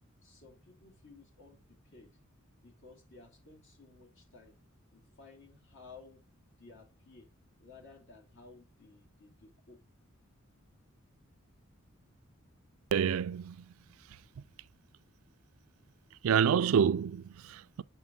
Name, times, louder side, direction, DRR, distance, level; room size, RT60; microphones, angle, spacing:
voice 1, 0.2-2.1 2.6-4.5 4.9-6.2 6.6-7.3 7.6-9.8, left 4 dB, 60° left, 2.6 m, -56 dB
voice 2, 12.9-13.6 16.2-17.8, right 7 dB, 75° right, 0.4 m, -28 dB
7.2 x 4.4 x 3.9 m
head